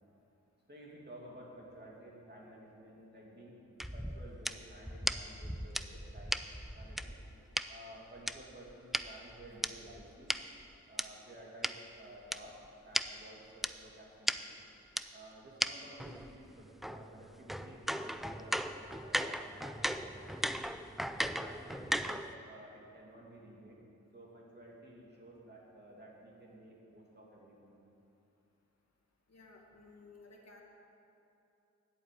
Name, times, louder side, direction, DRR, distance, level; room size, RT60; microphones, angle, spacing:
voice 1, 0.7-3.6 3.9-6.4 6.7-7.2 7.7-10.3 10.9-14.6 15.1-20.5 21.1-23.8 24.1-27.7, right 1 dB, 35° right, -3 dB, 2.6 m, -53 dB
sound 1, 3.8-7.6 8.3-11.1 11.6-11.7 12.3-12.4 12.6-12.7 12.9-13.1 13.6-13.7 14.3-14.4 15.0-15.1 15.6-15.7 16.0-22.3, equal, ahead, 0.3 m, -37 dB
voice 2, 29.3-30.6, left 3 dB, 60° left, 0 dB, 1.9 m, -56 dB
10.5 x 8.9 x 8.4 m, 2.8 s
wide cardioid pair, 130°, 30 cm